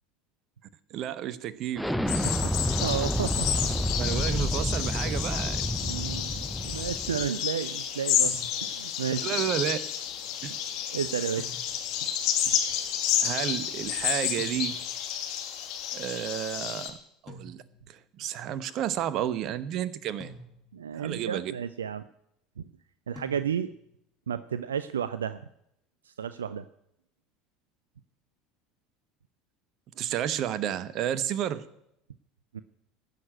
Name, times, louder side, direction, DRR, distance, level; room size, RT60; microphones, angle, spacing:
voice 1, 0.9-1.9 4.0-5.6 9.2-9.8 10.4-10.5 13.2-14.8 15.9-17.0 17.2-20.3 20.9-21.5 29.9-31.6, right 11 dB, 50° right, 16 dB, 0.9 m, -31 dB
Explosion, 1.7-7.3, equal, ahead, 0.7 m, -29 dB
sound 1, 2.1-16.9, left 10 dB, 55° left, 2.1 m, -31 dB
voice 2, 2.8-3.5 5.8-9.4 10.9-11.5 12.5-12.6 20.7-22.0 22.6-22.7 23.1-23.7 24.3-25.4 26.1-26.7 32.5-32.6, right 8 dB, 80° right, 14 dB, 0.4 m, -32 dB
sound 2, 8.2-9.0 11.4-12.1 14.4-15.1 17.3-18.0 20.2-21.0 23.1-23.9, left 1 dB, 15° left, 4.8 m, -48 dB
16.5 x 6.8 x 9.0 m, 0.78 s
figure-of-eight pair, 70°, 0 cm